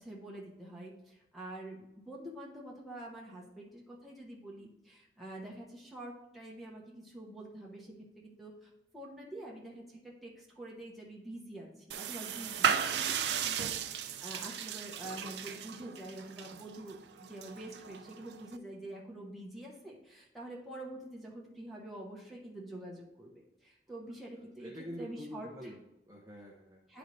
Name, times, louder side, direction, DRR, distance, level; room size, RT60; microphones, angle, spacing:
voice 1, 0.0-25.7 26.9-27.0, right 1 dB, ahead, -5 dB, 1.1 m, -47 dB
turning off shower, 11.9-18.6, right 7 dB, 70° right, 0.4 m, -35 dB
voice 2, 24.1-27.0, equal, 20° right, -2 dB, 0.7 m, -47 dB
10.0 x 4.0 x 3.2 m, 0.89 s
head